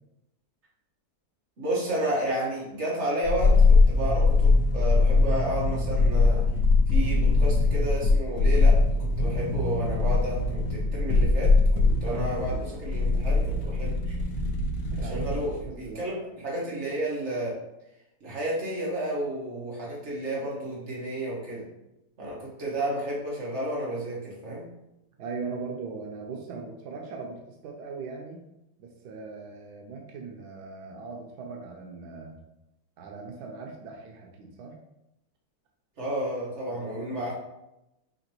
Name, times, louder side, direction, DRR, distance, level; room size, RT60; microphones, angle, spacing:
voice 1, 1.6-6.4 6.9-14.1 15.0-17.5 18.2-21.7 22.2-24.7 36.0-37.3, right 1 dB, 45° right, -5 dB, 1.7 m, -32 dB
sound 1, 3.2-15.6 15.9-16.0, left 3 dB, 80° left, 1.2 m, -22 dB
voice 2, 11.8-12.6 14.9-15.4 15.6-16.0 25.2-28.4 28.8-32.4 33.0-34.8 36.7-37.2, right 4 dB, 90° right, 1 dB, 1.2 m, -39 dB
5.8 x 2.9 x 2.9 m, 0.89 s
omnidirectional pair, 1.6 m